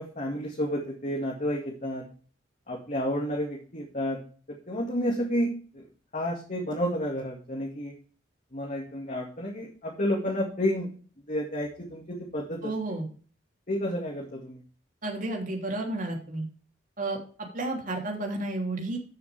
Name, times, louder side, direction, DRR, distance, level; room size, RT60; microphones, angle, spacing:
voice 1, 0.0-2.1 2.7-4.2 4.5-5.9 6.1-7.9 8.5-10.9 11.3-12.7 13.7-14.6, equal, 40° left, -1 dB, 2.1 m, -31 dB
voice 2, 12.6-13.1 15.0-16.4 17.0-17.2 17.5-19.0, right 2 dB, 45° right, 1 dB, 3.2 m, -31 dB
13.5 x 6.9 x 3.5 m, 0.40 s
head